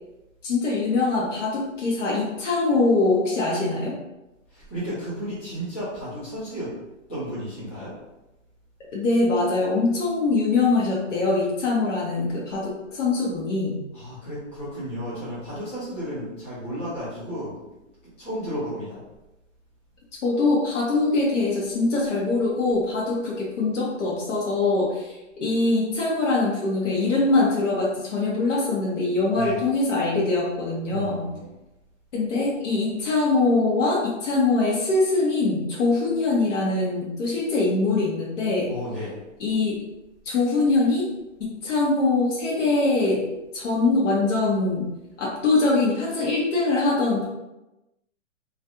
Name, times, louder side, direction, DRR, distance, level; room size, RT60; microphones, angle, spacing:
voice 1, 0.4-3.9 8.9-13.7 20.2-31.3 32.1-38.7 39.4-39.8 40.3-41.1 41.4-43.3 43.5-44.9 45.2-47.2, left 3 dB, 70° left, -4 dB, 0.9 m, -23 dB
voice 2, 4.5-6.7 7.1-7.9 13.9-17.6 18.0-19.0 29.3-29.6 30.8-31.5 38.7-39.2, equal, 10° left, -12 dB, 0.4 m, -33 dB
2.4 x 2.2 x 2.8 m, 0.98 s
hypercardioid pair, 155°, 38 cm